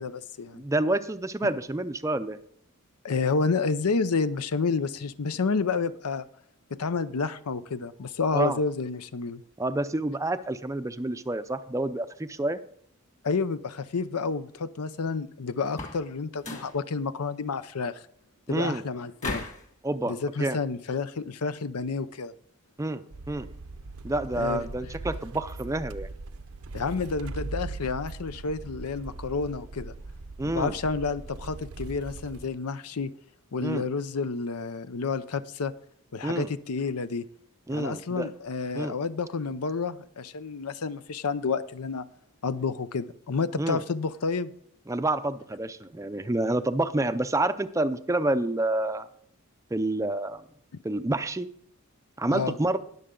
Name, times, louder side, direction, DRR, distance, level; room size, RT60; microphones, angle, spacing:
voice 1, 0.0-0.6 3.0-6.2 6.7-9.4 13.2-18.0 18.5-19.5 20.1-22.3 24.3-24.6 26.7-29.9 30.5-33.1 33.5-35.7 36.1-37.3 37.7-42.1 42.4-44.5 52.3-52.6, left 4 dB, 85° left, 14 dB, 0.6 m, -30 dB
voice 2, 0.5-2.4 8.3-8.6 9.6-12.6 18.5-18.8 19.8-20.6 22.8-23.0 23.3-23.5 24.0-26.1 30.4-30.8 33.6-33.9 36.2-36.5 37.7-38.3 38.8-38.9 43.6-43.8 44.9-49.1 49.7-50.4 50.8-51.5 52.2-52.8, right 2 dB, 15° right, 11 dB, 0.4 m, -28 dB
sound 1, 15.7-16.1 16.4-16.8 19.2-19.7, left 2 dB, 30° left, 1.8 m, -35 dB
sound 2, 23.1-32.5, right 3 dB, 65° right, 0.6 m, -40 dB
20.0 x 6.7 x 3.8 m, 0.64 s
head